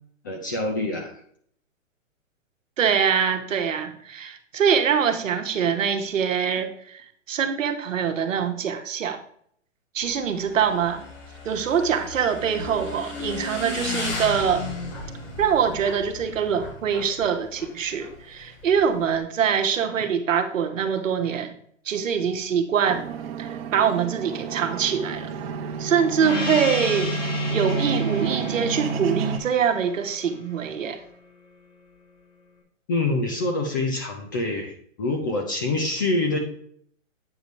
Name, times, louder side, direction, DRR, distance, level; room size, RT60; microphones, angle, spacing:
voice 1, 0.2-1.1 32.9-36.4, left 2 dB, 15° left, 3 dB, 0.3 m, -26 dB
voice 2, 2.8-9.2 9.9-11.0 11.4-14.6 15.4-21.5 21.8-23.0 23.4-25.3 25.8-27.1 27.5-31.0, right 7 dB, 75° right, 6 dB, 1.2 m, -24 dB
Motorcycle / Engine, 10.0-19.2, left 2 dB, 45° left, 2.6 m, -35 dB
sound 1, 22.9-29.4, right 5 dB, 50° right, 1.0 m, -30 dB
Gong, 26.2-31.2, left 3 dB, 70° left, 2.7 m, -33 dB
8.1 x 5.1 x 3.1 m, 0.64 s
hypercardioid pair, 130°, 39 cm